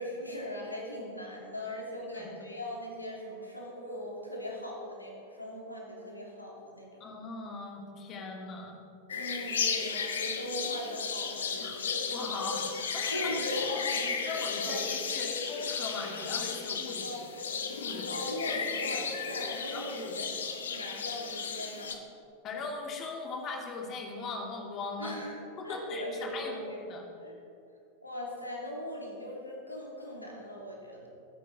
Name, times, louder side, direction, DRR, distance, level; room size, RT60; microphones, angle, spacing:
voice 1, 0.0-7.0 9.1-12.0 13.1-14.8 17.0-17.2 18.1-22.0 25.0-26.9 27.2-27.3 28.0-31.1, left 1 dB, 85° left, -2 dB, 2.9 m, -39 dB
voice 2, 2.1-2.5 7.0-8.8 11.6-11.8 12.1-12.6 12.9-13.4 14.2-17.2 17.8-18.2 18.8-19.0 19.7-20.2 22.4-25.2 25.6-27.1, left 3 dB, 30° left, 1 dB, 2.6 m, -39 dB
sound 1, 9.1-21.9, left 6 dB, 65° left, 1.2 m, -34 dB
20.5 x 10.0 x 4.3 m, 2.6 s
figure-of-eight pair, 90°, 0 cm